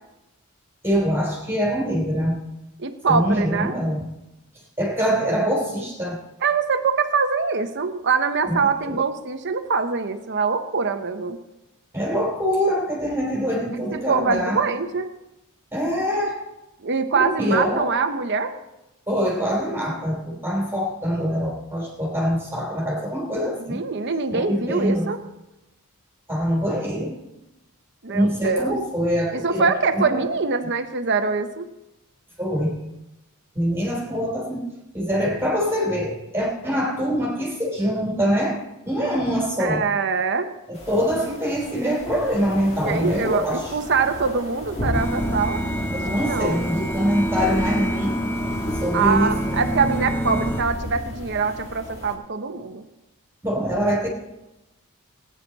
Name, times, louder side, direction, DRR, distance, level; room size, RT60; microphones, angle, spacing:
voice 1, 0.8-2.4 3.1-4.1 4.8-6.2 8.4-8.6 8.9-9.0 11.9-14.6 15.7-16.4 17.1-17.9 19.1-23.8 24.3-25.1 26.3-27.1 28.1-30.3 30.6-30.7 32.4-32.8 33.5-39.8 40.7-43.7 45.9-48.2 48.8-49.6 53.4-54.1, equal, 10° right, -3 dB, 3.3 m, -24 dB
voice 2, 2.8-3.7 6.4-11.4 13.9-15.1 16.8-18.5 23.6-25.2 28.0-28.8 29.3-31.6 39.6-40.5 41.2-41.4 42.8-45.6 46.2-46.6 48.9-52.8, right 5 dB, 55° right, 8 dB, 1.0 m, -23 dB
sound 1, 40.7-52.1, equal, 30° left, 2.0 m, -33 dB
sound 2, 44.9-50.6, right 1 dB, 10° left, 0.6 m, -27 dB
19.0 x 9.7 x 4.2 m, 0.96 s
head